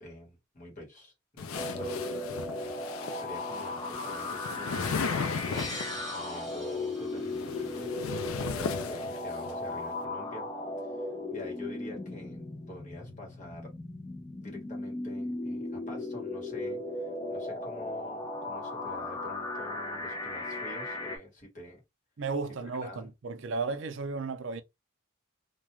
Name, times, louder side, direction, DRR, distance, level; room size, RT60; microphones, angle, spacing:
voice 1, 0.0-2.2 3.1-7.9 8.5-10.5 10.8-13.7 14.1-21.8 22.6-23.1, left 1 dB, 40° left, 1.2 m, -47 dB
sound 1, 1.4-6.0 7.0-9.5, left 5 dB, 85° left, 0.4 m, -36 dB
sound 2, 1.5-21.2, left 2 dB, 20° left, 0.5 m, -37 dB
sound 3, 5.5-8.3, left 1 dB, ahead, 1.2 m, -44 dB
voice 2, 22.2-24.6, right 4 dB, 60° right, 0.5 m, -34 dB
2.4 x 2.2 x 3.0 m
head